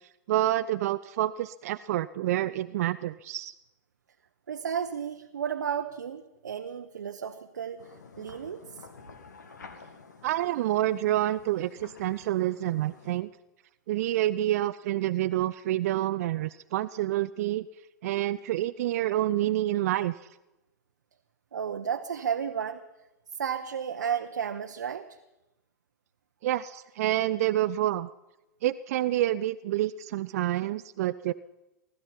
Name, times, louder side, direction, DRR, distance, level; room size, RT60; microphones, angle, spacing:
voice 1, 0.3-3.5 10.2-13.3 13.9-17.7 18.0-20.2 26.4-28.1 28.6-31.3, right 14 dB, 60° right, 13 dB, 0.4 m, -28 dB
voice 2, 4.5-8.6 21.5-22.8 23.4-25.1, right 7 dB, 80° right, 5 dB, 0.8 m, -33 dB
sound 1, 7.8-13.2, left 4 dB, 80° left, 2.0 m, -50 dB
19.5 x 12.5 x 5.7 m, 0.98 s
hypercardioid pair, 100°, 9 cm